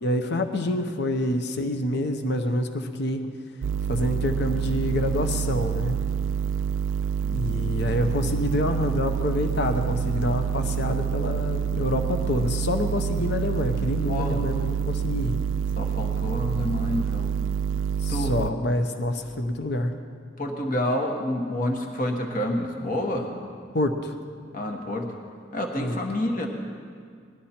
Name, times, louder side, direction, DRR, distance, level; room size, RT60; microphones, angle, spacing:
voice 1, 0.0-3.3 3.9-6.0 7.2-15.3 18.0-19.9 23.7-24.1 25.8-26.0, left 1 dB, 60° left, 7 dB, 0.8 m, -27 dB
sound 1, 3.6-18.5, right 7 dB, 80° right, 0.3 m, -27 dB
voice 2, 14.1-14.4 15.8-17.4 18.1-18.4 20.4-23.3 24.5-25.1 25.5-26.5, left 1 dB, 45° left, 2 dB, 1.3 m, -28 dB
19.0 x 12.0 x 4.3 m, 2.1 s
head